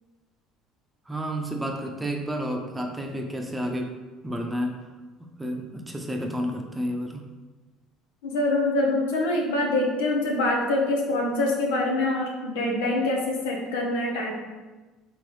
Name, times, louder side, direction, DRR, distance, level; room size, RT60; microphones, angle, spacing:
voice 1, 1.1-3.9 4.2-4.8 5.4-7.3, equal, 15° right, 2 dB, 0.7 m, -30 dB
voice 2, 8.2-14.3, left 2 dB, 85° left, 0 dB, 0.8 m, -25 dB
3.8 x 3.7 x 3.2 m, 1.2 s
supercardioid pair, 75°, 0 cm